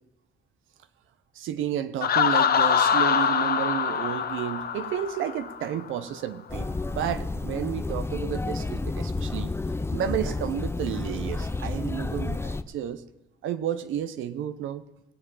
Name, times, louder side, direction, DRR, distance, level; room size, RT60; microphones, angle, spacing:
voice 1, 1.3-9.5 9.9-13.0 13.4-14.8, right 10 dB, 80° right, 12 dB, 0.8 m, -31 dB
Laughter, 2.0-5.7, left 7 dB, 50° left, 0.8 m, -24 dB
sound 1, 6.5-12.6, left 3 dB, 10° left, 0.5 m, -31 dB
19.5 x 7.6 x 5.6 m, 0.95 s
cardioid pair, 90°, 20 cm